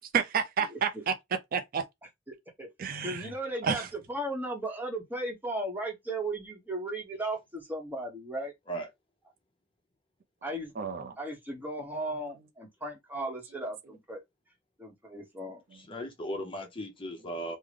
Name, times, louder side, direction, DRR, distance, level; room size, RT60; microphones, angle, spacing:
voice 1, 0.1-1.1 1.5-1.8 2.8-3.3 3.6-3.9 10.8-11.1, right 6 dB, 50° right, 0.4 m, -30 dB
voice 2, 0.7-1.0 2.3-2.7 3.0-8.5 10.4-10.7 11.2-14.2 14.8-15.6, right 1 dB, 10° right, 1.0 m, -36 dB
voice 3, 15.7-17.6, equal, 25° left, 0.7 m, -37 dB
3.6 x 2.0 x 3.2 m
head